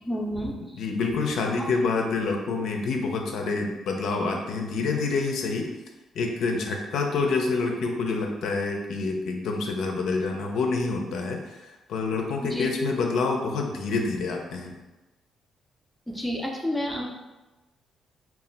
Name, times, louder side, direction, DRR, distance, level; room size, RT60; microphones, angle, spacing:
voice 1, 0.0-0.6 12.5-12.7 16.1-17.1, equal, 5° left, 0 dB, 0.4 m, -29 dB
voice 2, 0.7-5.7 6.1-14.8, left 4 dB, 75° left, 2 dB, 0.4 m, -27 dB
2.2 x 2.1 x 3.8 m, 1.1 s
cardioid pair, 90°, 0 cm